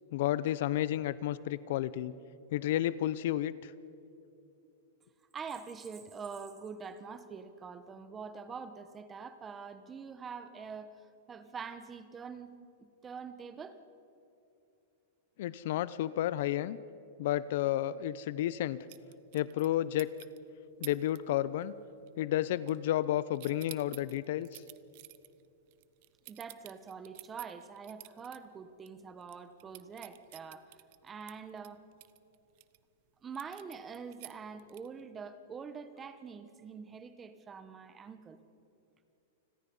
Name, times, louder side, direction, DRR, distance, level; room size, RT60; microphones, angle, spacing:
voice 1, 0.1-2.1 2.5-3.7 15.4-16.8 17.2-18.8 19.3-20.1 20.8-21.7 22.2-24.6, left 13 dB, 60° left, 17 dB, 0.6 m, -31 dB
voice 2, 5.3-11.0 11.3-12.5 12.8-13.8 26.3-31.8 33.2-38.4, right 5 dB, 15° right, 11 dB, 1.1 m, -45 dB
sound 1, 18.9-19.7 20.0-20.4 20.8-21.2 21.5-21.8 22.1-23.1 23.3-28.4 28.8-28.9 29.2-32.8 33.3-35.0, right 20 dB, 50° right, 0.8 m, -51 dB
29.0 x 21.5 x 5.5 m, 2.8 s
supercardioid pair, 150°, 0 cm